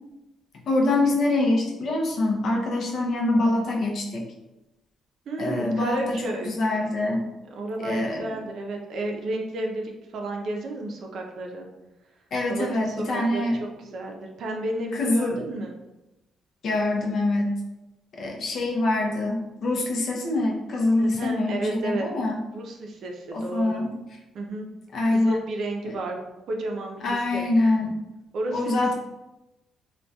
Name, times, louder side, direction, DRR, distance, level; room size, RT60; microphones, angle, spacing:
voice 1, 0.7-4.2 5.4-7.3 7.8-8.3 12.3-13.6 14.9-15.4 16.6-17.5 18.2-22.4 23.3-23.9 24.9-25.4 25.8-25.9 27.0-27.9 28.5-28.9, left 2 dB, 60° left, 0 dB, 0.5 m, -24 dB
voice 2, 5.3-6.5 7.5-11.7 12.5-13.4 13.8-15.8 21.0-22.1 22.5-23.8 24.3-24.7 25.0-26.2 26.5-27.5 28.3-28.9, right 1 dB, 65° right, 1 dB, 0.4 m, -32 dB
2.7 x 2.2 x 2.2 m, 0.97 s
cardioid pair, 90°, 0 cm